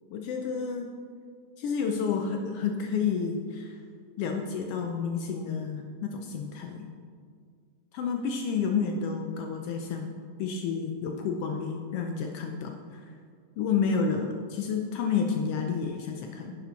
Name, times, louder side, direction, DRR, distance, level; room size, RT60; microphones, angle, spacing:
voice 1, 0.1-0.9 1.6-3.8 4.2-6.9 7.9-10.1 10.4-13.0 13.6-16.6, left 5 dB, 85° left, 3 dB, 1.3 m, -30 dB
10.5 x 7.0 x 4.0 m, 2.1 s
omnidirectional pair, 3.3 m